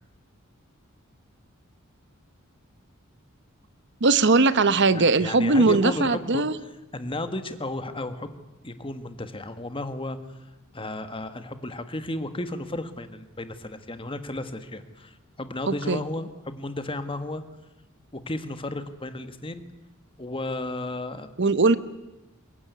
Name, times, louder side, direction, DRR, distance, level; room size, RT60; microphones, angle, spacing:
voice 1, 4.0-6.5 15.7-16.0 21.4-21.8, right 3 dB, 60° right, 14 dB, 1.0 m, -20 dB
voice 2, 4.9-6.4 6.9-8.4 8.6-10.2 10.7-17.4 18.1-19.6 20.2-21.4, left 2 dB, 25° left, 10 dB, 1.7 m, -33 dB
23.5 x 21.0 x 9.5 m, 1.0 s
head